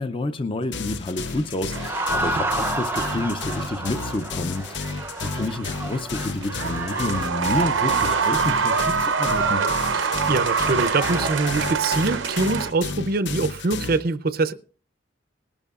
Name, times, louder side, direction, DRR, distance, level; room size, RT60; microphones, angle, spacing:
voice 1, 0.0-9.6, left 2 dB, 30° left, 0.6 m, -29 dB
sound 1, 0.7-14.0, left 4 dB, 65° left, 0.7 m, -33 dB
sound 2, 1.2-11.7, right 2 dB, 10° right, 0.6 m, -32 dB
sound 3, 1.7-12.7, right 6 dB, 85° right, 0.8 m, -26 dB
voice 2, 9.9-14.5, right 3 dB, 55° right, 0.6 m, -24 dB
19.5 x 12.5 x 2.4 m
head